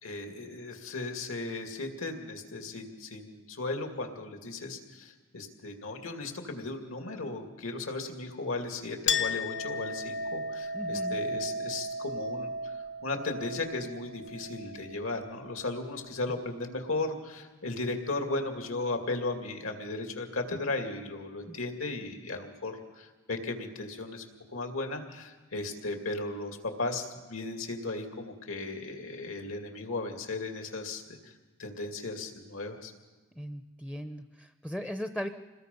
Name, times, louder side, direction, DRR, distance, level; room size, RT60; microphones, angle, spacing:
voice 1, 0.0-12.7 13.0-24.2 24.5-31.3 31.6-32.9, left 2 dB, 75° left, 4 dB, 2.5 m, -36 dB
Chink clink, 9.1-16.1, left 2 dB, 55° left, 0.9 m, -35 dB
voice 2, 10.7-11.2 21.5-21.6 33.4-35.3, equal, 5° left, 8 dB, 0.6 m, -38 dB
27.5 x 20.5 x 5.5 m, 1.3 s
head